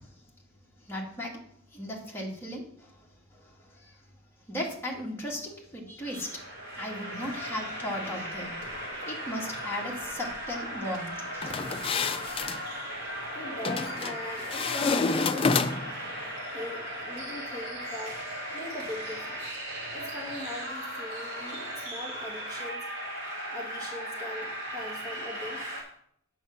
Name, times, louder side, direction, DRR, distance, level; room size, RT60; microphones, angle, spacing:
voice 1, 0.8-1.4 1.7-4.0 4.5-6.5 6.8-8.5 9.0-11.5, left 1 dB, 10° left, -3 dB, 2.0 m, -37 dB
sound 1, 6.0-25.8, equal, 55° right, 4.3 m, -37 dB
sound 2, 11.4-12.6 13.6-14.2 14.5-16.0, left 4 dB, 25° left, 0.4 m, -28 dB
voice 2, 13.3-15.6 16.5-19.5 19.9-22.8 23.5-25.8, left 1 dB, 15° right, -3 dB, 2.1 m, -41 dB
8.8 x 6.4 x 5.8 m, 0.67 s
head